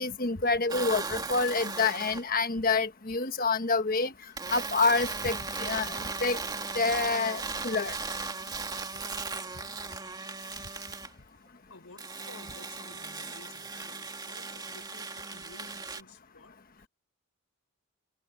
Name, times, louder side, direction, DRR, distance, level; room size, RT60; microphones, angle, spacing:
voice 1, 0.0-4.1 4.5-6.4 6.7-7.9, left 4 dB, 45° left, 1.3 m, -27 dB
sound 1, 0.7-2.3 4.4-11.1 12.0-16.0, right 4 dB, 20° right, 2.6 m, -37 dB
voice 2, 11.7-16.9, left 3 dB, 75° left, 5.3 m, -53 dB
head